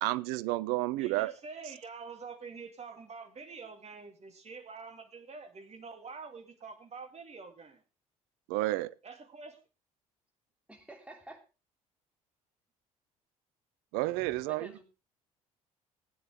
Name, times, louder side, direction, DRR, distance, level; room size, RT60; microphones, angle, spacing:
voice 1, 0.0-1.3 8.5-8.9 13.9-14.7, right 18 dB, 65° right, 0.6 m, -31 dB
voice 2, 1.0-7.8 9.0-9.6, right 4 dB, 35° right, 2.3 m, -46 dB
voice 3, 10.7-11.4 14.1-14.8, right 1 dB, 5° right, 3.2 m, -50 dB
16.0 x 9.7 x 3.6 m
figure-of-eight pair, 55°, 18 cm